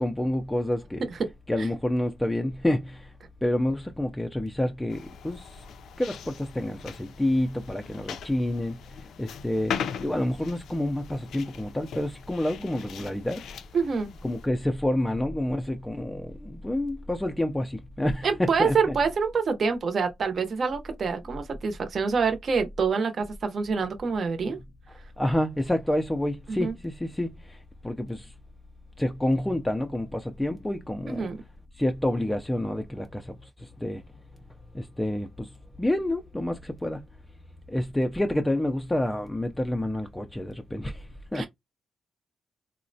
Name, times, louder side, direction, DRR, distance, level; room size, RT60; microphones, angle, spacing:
voice 1, 0.0-1.0 1.5-3.1 3.4-5.5 6.0-8.8 9.2-9.8 10.0-13.4 14.2-19.0 24.4-24.5 25.2-27.3 27.8-28.3 29.0-31.3 31.8-33.2 33.8-34.0 34.7-35.5 35.8-37.0 37.7-41.0 41.3-41.5, left 1 dB, 5° left, 0.3 m, -28 dB
sound 1, 4.9-14.5, left 7 dB, 80° left, 0.4 m, -40 dB
voice 2, 13.7-14.1 18.2-24.6 26.5-26.7 31.1-31.4 41.3-41.5, right 5 dB, 40° right, 0.6 m, -26 dB
3.9 x 2.0 x 2.6 m
wide cardioid pair, 160°, 0 cm